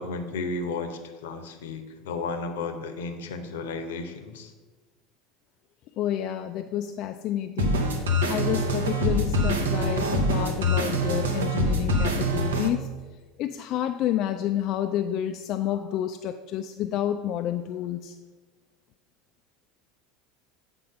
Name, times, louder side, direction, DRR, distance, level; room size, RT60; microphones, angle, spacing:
voice 1, 0.0-4.5, left 3 dB, 70° left, 7 dB, 0.7 m, -33 dB
voice 2, 6.0-7.8 8.3-12.9 13.4-18.1, left 11 dB, 50° left, 6 dB, 0.3 m, -29 dB
sound 1, 7.6-12.7, equal, 75° right, 0.8 m, -25 dB
7.9 x 3.8 x 5.3 m, 1.3 s
figure-of-eight pair, 75°, 0 cm